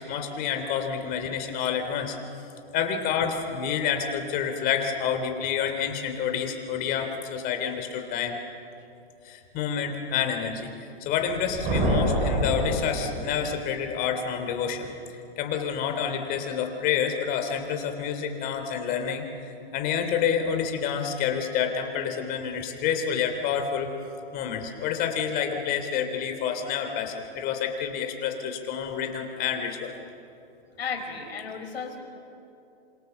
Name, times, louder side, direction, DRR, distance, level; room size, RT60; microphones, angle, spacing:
voice 1, 0.0-2.2 2.7-8.3 9.2-10.7 11.0-23.9 24.3-29.9, left 7 dB, 30° left, 5 dB, 3.2 m, -28 dB
sound 1, 11.2-13.7, right 1 dB, 25° right, 4.6 m, -27 dB
voice 2, 30.8-32.0, left 5 dB, 75° left, 4 dB, 5.0 m, -34 dB
27.5 x 26.5 x 7.1 m, 2.7 s
hypercardioid pair, 140°, 31 cm